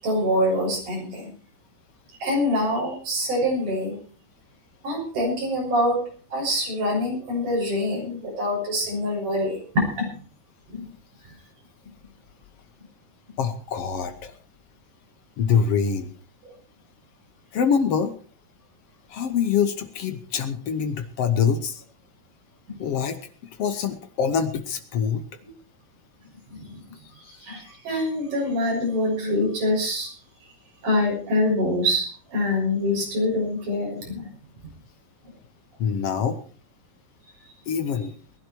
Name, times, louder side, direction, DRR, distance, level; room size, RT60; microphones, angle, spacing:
voice 1, 0.0-1.3 2.2-3.9 4.8-6.0 6.3-10.1 10.7-10.9 26.5-26.8 27.4-30.1 30.8-34.3, left 1 dB, 55° right, -1 dB, 8.3 m, -25 dB
voice 2, 13.4-14.3 15.4-16.1 17.5-18.1 19.1-21.8 22.8-23.2 23.6-25.2 27.2-27.4 35.8-36.4 37.7-38.1, left 7 dB, 75° left, 8 dB, 1.4 m, -24 dB
20.0 x 11.5 x 4.6 m, 0.41 s
omnidirectional pair, 4.4 m